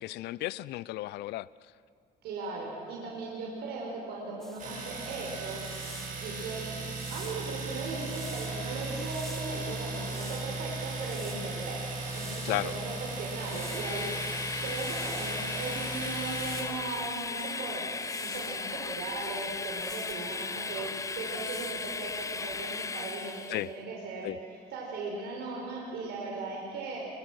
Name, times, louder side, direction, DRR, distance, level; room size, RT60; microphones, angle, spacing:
voice 1, 0.0-1.5 12.4-12.7 23.5-23.7 24.2-24.4, left 17 dB, 80° left, 20 dB, 0.5 m, -33 dB
voice 2, 2.2-5.6 6.2-6.8 7.1-24.3 24.7-27.0, right 3 dB, 75° right, -2 dB, 5.1 m, -38 dB
sound 1, 4.4-4.7 5.4-6.2 6.9-8.6 8.9-10.5 10.9-12.7 13.3-14.1 14.4-15.4 16.1-16.9 17.7-18.6 19.5-20.3 21.1-21.7, equal, ahead, 2.1 m, -49 dB
Domestic sounds home sounds, 4.6-16.6, right 3 dB, 50° right, 6.2 m, -37 dB
Train, 13.3-23.7, left 4 dB, 20° left, 0.7 m, -36 dB
27.0 x 24.0 x 6.4 m, 2.4 s
cardioid pair, 110°, 17 cm